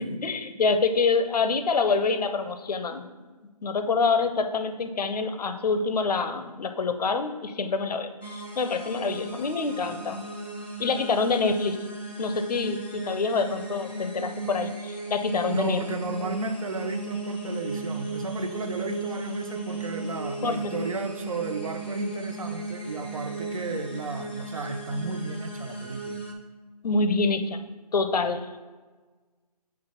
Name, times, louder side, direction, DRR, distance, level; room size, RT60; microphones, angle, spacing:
voice 1, 0.2-3.0 3.6-10.2 10.8-11.8 12.2-15.8 20.4-20.8 26.8-27.6 27.9-28.6, left 4 dB, 75° left, 8 dB, 0.6 m, -26 dB
sound 1, 8.2-26.3, right 2 dB, 15° left, 0.3 m, -36 dB
voice 2, 15.4-26.2, right 3 dB, 55° right, 7 dB, 0.6 m, -33 dB
6.0 x 3.2 x 5.5 m, 1.3 s
hypercardioid pair, 170°, 20 cm